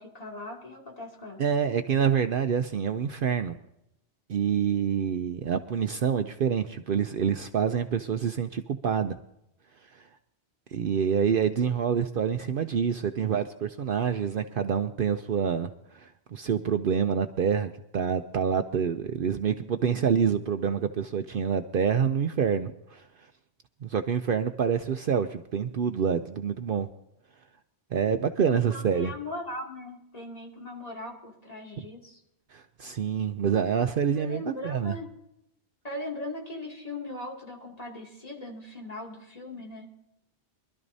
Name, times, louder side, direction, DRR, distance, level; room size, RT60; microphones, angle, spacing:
voice 1, 0.0-1.4 28.7-32.2 34.2-35.1 35.8-39.9, left 1 dB, 35° left, -1 dB, 2.5 m, -39 dB
voice 2, 1.4-3.5 4.3-9.2 9.8-10.1 10.7-23.3 23.8-26.9 27.9-29.1 32.5-35.0, right 7 dB, 60° right, 8 dB, 0.7 m, -27 dB
24.0 x 12.5 x 2.7 m, 0.81 s
omnidirectional pair, 1.1 m